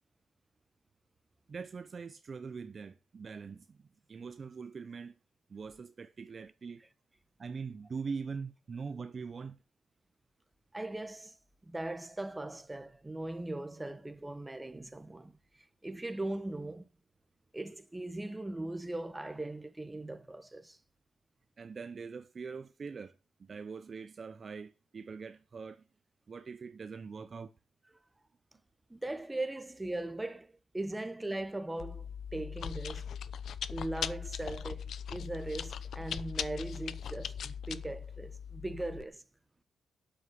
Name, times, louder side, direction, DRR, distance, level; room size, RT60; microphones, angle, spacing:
voice 1, 1.5-3.8 4.1-5.1 5.5-6.8 7.4-9.6 21.6-25.8 26.3-27.5, right 5 dB, 40° right, 0.6 m, -42 dB
voice 2, 10.7-11.4 11.7-16.9 17.5-20.8 28.9-33.1 33.7-39.2, right 2 dB, 15° right, 1.2 m, -39 dB
Chewing mastication, 31.8-39.0, left 8 dB, 70° left, 0.7 m, -40 dB
8.6 x 7.6 x 7.8 m
cardioid pair, 90°, 0 cm